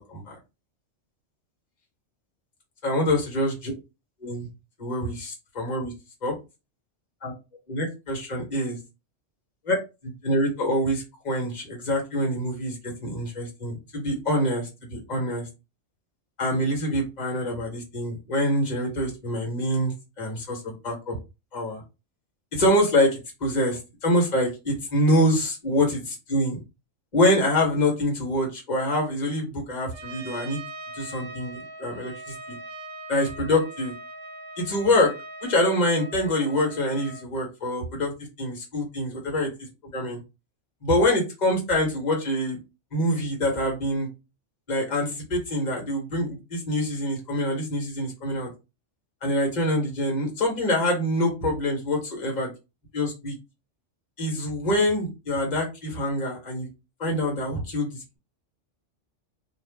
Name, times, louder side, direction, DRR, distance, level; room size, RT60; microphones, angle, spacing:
voice 1, 2.8-3.7 4.2-4.5 4.8-5.9 6.2-6.3 7.2-7.3 7.7-8.8 9.7-9.8 10.0-15.5 16.4-21.1 21.5-21.8 22.5-26.6 27.1-30.6 30.9-32.5 33.1-33.9 34.6-35.1 35.4-38.1 38.4-39.5 39.9-40.2 40.8-42.6 42.9-44.1 44.7-48.5 49.2-52.5 52.9-53.3 54.2-56.7 57.0-58.0, left 1 dB, 35° left, -1 dB, 1.2 m, -25 dB
Trumpet, 29.9-37.3, right 2 dB, 85° right, 1.0 m, -41 dB
2.5 x 2.4 x 3.4 m, 0.27 s
omnidirectional pair, 1.3 m